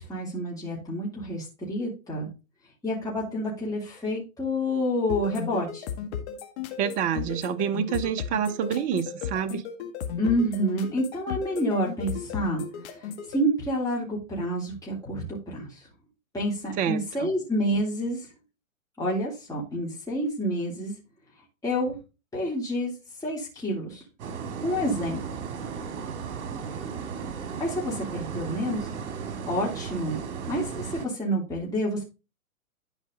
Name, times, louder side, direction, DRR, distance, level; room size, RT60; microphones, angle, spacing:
voice 1, 0.0-2.3 2.8-5.8 10.2-12.6 13.0-15.8 16.3-18.3 19.0-20.9 21.6-22.0 22.3-22.9 23.2-24.0 24.6-25.2 27.6-28.9 29.5-30.2 30.5-32.0, equal, 10° left, 3.5 m, -28 dB
sound 1, 5.1-13.4, left 8 dB, 50° left, 1.9 m, -35 dB
voice 2, 6.8-9.6 16.8-17.3, right 8 dB, 20° right, 0.6 m, -27 dB
sound 2, 24.2-31.1, right 6 dB, 55° right, 2.3 m, -35 dB
11.5 x 4.7 x 4.0 m
hypercardioid pair, 125°, 42 cm